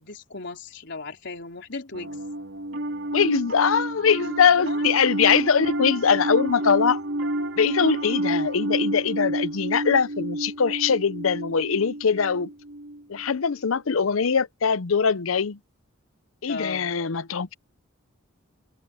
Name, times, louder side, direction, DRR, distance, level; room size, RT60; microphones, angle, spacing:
voice 1, 0.0-2.3 4.6-4.9 16.5-16.9, left 3 dB, 60° left, 4.1 m, -36 dB
Piano, 1.9-13.4, right 1 dB, 65° right, 3.2 m, -29 dB
voice 2, 3.1-7.0 7.6-12.5 13.1-15.6 16.4-17.5, left 6 dB, 90° left, 0.7 m, -22 dB
head